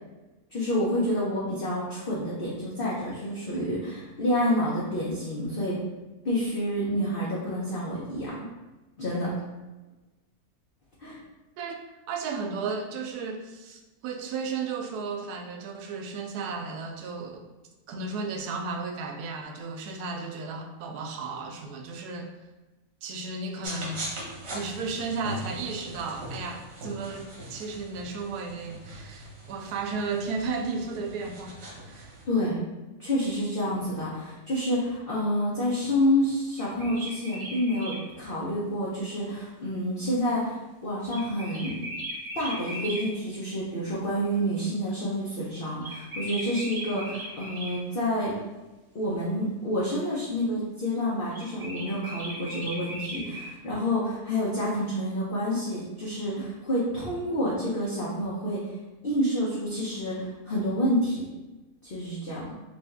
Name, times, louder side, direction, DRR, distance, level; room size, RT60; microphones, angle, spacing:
voice 1, 0.5-5.8 6.2-8.5 9.0-9.3 11.0-11.2 32.3-32.6 33.0-41.9 42.3-48.4 48.9-58.7 59.0-61.3 61.8-62.5, equal, 50° left, -7 dB, 0.7 m, -28 dB
voice 2, 12.1-17.5 17.9-22.4 23.0-24.1 24.5-31.5 31.9-32.1, right 4 dB, 85° right, 3 dB, 1.1 m, -34 dB
sound 1, 23.6-32.2, right 1 dB, 50° right, 1.1 m, -41 dB
sound 2, 36.5-38.0 41.1-43.0 45.8-47.7 51.3-53.5, right 1 dB, 20° right, 0.9 m, -37 dB
3.4 x 2.6 x 3.4 m, 1.1 s
omnidirectional pair, 1.6 m